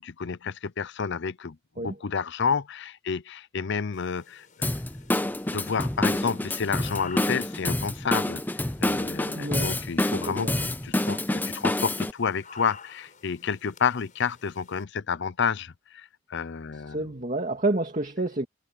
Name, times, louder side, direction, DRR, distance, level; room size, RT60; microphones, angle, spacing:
voice 1, 0.0-4.5 5.5-17.0, left 6 dB, 55° left, 0.6 m, -30 dB
sound 1, 3.9-14.8, left 5 dB, 35° left, 6.5 m, -51 dB
Drum kit / Drum, 4.6-12.1, left 1 dB, 10° left, 0.6 m, -28 dB
voice 2, 9.4-9.8 10.3-10.6 16.9-18.5, right 2 dB, 35° right, 2.1 m, -29 dB
head